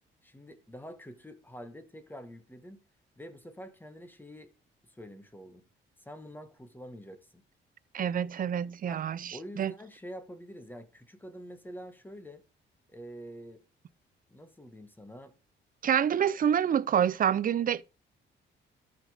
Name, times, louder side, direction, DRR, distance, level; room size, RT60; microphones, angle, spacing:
voice 1, 0.2-2.8 3.2-4.5 4.8-5.6 6.0-7.4 8.9-9.0 9.3-12.4 12.9-13.6 14.3-15.3, equal, 10° left, 1.5 m, -46 dB
voice 2, 7.9-9.7 15.8-17.8, right 9 dB, 45° right, 0.6 m, -27 dB
13.0 x 5.1 x 5.0 m
cardioid pair, 90°, 20 cm